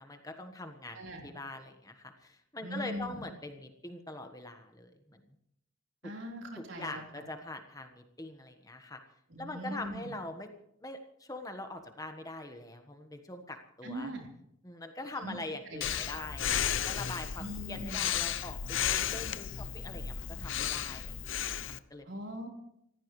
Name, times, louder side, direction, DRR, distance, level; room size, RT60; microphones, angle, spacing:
voice 1, 0.0-5.3 6.0-6.1 6.6-9.0 9.4-10.5 10.8-14.1 14.6-21.2 21.5-22.0, left 2 dB, 15° left, 5 dB, 1.3 m, -43 dB
voice 2, 0.9-1.3 2.6-3.2 6.0-7.0 9.3-10.1 13.8-14.3 15.2-15.4 15.7-15.8 17.4-18.1 22.0-22.5, equal, 65° right, 1 dB, 4.0 m, -41 dB
Breathing, 15.8-21.8, left 9 dB, 70° left, 0.7 m, -34 dB
28.0 x 15.0 x 3.2 m, 0.77 s
head